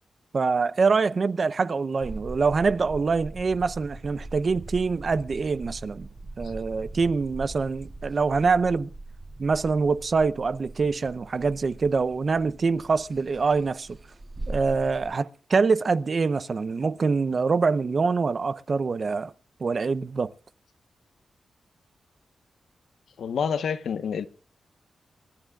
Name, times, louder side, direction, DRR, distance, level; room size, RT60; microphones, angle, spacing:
voice 1, 0.3-6.1 6.4-8.9 9.4-13.9 14.5-19.3 19.6-20.3, right 4 dB, 45° right, 0.7 m, -25 dB
sound 1, 2.0-15.1, right 2 dB, 30° right, 2.2 m, -41 dB
voice 2, 23.2-24.3, left 7 dB, 90° left, 1.0 m, -28 dB
28.5 x 12.5 x 2.4 m
wide cardioid pair, 110°, 0 cm